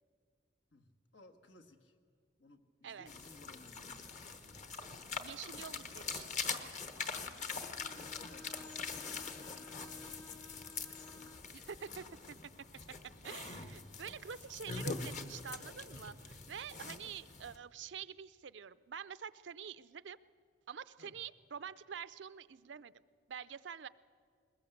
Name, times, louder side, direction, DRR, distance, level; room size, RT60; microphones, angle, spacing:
voice 1, 0.7-1.9 2.4-4.7 7.8-10.4 13.3-13.4 17.0-17.1 21.0-21.2, left 2 dB, 80° left, 6 dB, 1.5 m, -61 dB
sound 1, 3.1-17.6, left 4 dB, 40° left, 1.1 m, -44 dB
voice 2, 5.2-6.4 11.5-12.4 13.2-20.2 20.7-22.9 23.3-23.9, right 7 dB, 75° right, 15 dB, 0.5 m, -47 dB
Bowed string instrument, 7.7-11.5, left 2 dB, 20° left, 0.8 m, -55 dB
21.0 x 20.5 x 7.9 m, 2.1 s
head